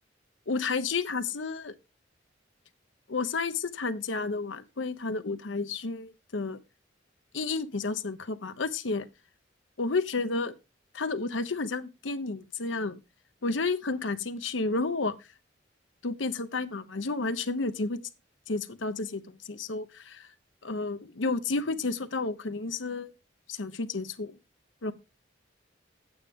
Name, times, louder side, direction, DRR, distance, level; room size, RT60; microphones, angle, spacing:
voice 1, 0.5-1.7 3.1-6.6 7.3-9.0 9.8-10.5 10.9-13.0 13.4-15.1 16.0-18.0 18.5-19.2 19.5-20.2 20.6-23.1 23.5-24.3 24.8-24.9, left 3 dB, 75° left, 0.9 m, -31 dB
9.9 x 8.8 x 3.6 m
head